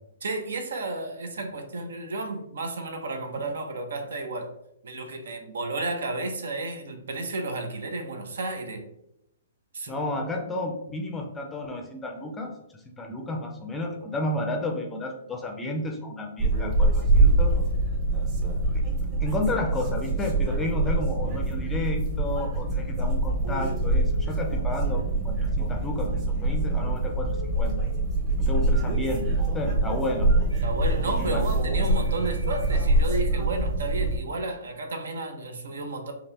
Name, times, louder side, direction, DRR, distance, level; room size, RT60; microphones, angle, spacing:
voice 1, 0.2-4.5 4.8-8.9 9.7-10.0 30.6-36.1, right 2 dB, 85° right, 5 dB, 0.8 m, -32 dB
voice 2, 9.9-12.5 13.0-17.5 18.7-18.8 19.2-27.8 28.4-30.3 31.2-31.7, left 2 dB, 10° left, 3 dB, 0.5 m, -32 dB
sound 1, 16.4-34.2, right 2 dB, 20° right, 0.9 m, -24 dB
Telephone, 23.8-24.3 27.3-27.8 28.7-29.0 30.3-30.6 31.9-32.9, right 1 dB, 60° right, 1.5 m, -45 dB
5.3 x 2.4 x 2.8 m, 0.80 s
hypercardioid pair, 160°, 0 cm